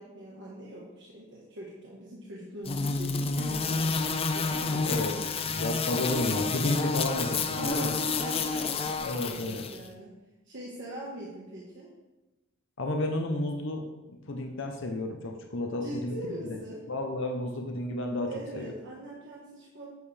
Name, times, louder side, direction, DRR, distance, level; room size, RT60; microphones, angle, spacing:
voice 1, 0.0-5.2 7.5-10.1 10.4-11.9 15.8-16.8 18.3-19.9, right 1 dB, 60° right, -4 dB, 1.4 m, -42 dB
sound 1, 2.6-9.8, left 4 dB, 30° left, 0.5 m, -30 dB
voice 2, 4.9-7.9 9.0-9.6 12.8-16.1 16.4-16.6 16.9-18.7, left 1 dB, 60° left, 3 dB, 0.9 m, -32 dB
9.3 x 7.6 x 3.4 m, 1.1 s
head